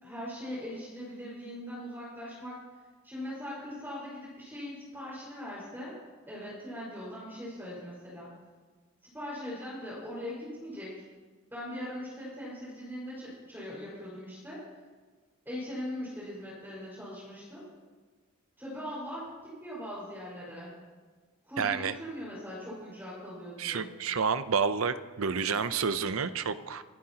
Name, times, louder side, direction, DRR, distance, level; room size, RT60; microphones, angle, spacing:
voice 1, 0.0-2.6 3.0-5.9 6.3-8.3 9.1-10.9 11.5-14.6 15.4-17.6 18.6-20.7 21.5-23.9, equal, 10° right, -7 dB, 5.1 m, -40 dB
voice 2, 21.6-21.9 23.6-26.8, right 5 dB, 70° right, 12 dB, 0.6 m, -29 dB
25.5 x 11.5 x 2.9 m, 1.4 s
head